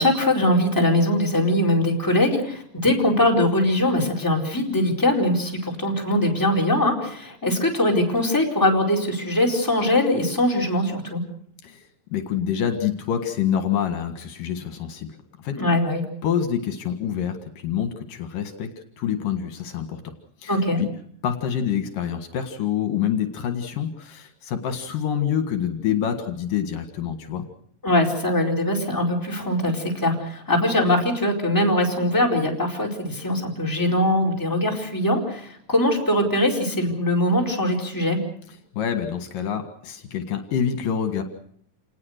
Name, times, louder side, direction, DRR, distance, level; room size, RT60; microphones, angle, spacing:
voice 1, 0.0-11.2 15.6-16.0 20.5-20.8 27.8-38.2, left 1 dB, 5° left, 0 dB, 4.2 m, -21 dB
voice 2, 12.1-15.1 15.4-15.6 16.2-17.4 17.6-20.0 20.4-20.5 20.8-20.9 21.2-27.4 38.7-41.2, left 8 dB, 75° left, 7 dB, 3.3 m, -26 dB
28.5 x 19.5 x 6.5 m, 0.64 s
omnidirectional pair, 4.0 m